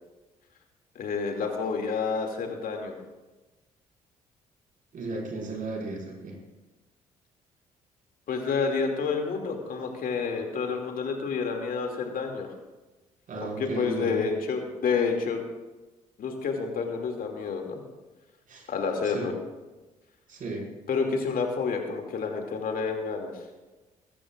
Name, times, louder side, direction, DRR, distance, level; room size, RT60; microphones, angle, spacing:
voice 1, 0.9-2.9 8.3-12.5 13.4-15.4 16.2-17.8 18.7-19.3 20.9-23.3, left 5 dB, 55° left, 3 dB, 2.6 m, -29 dB
voice 2, 4.9-6.4 13.3-14.3 18.5-18.7 19.0-19.3 20.3-20.7, right 3 dB, 50° right, -2 dB, 5.7 m, -35 dB
21.5 x 15.5 x 2.5 m, 1.2 s
figure-of-eight pair, 45°, 18 cm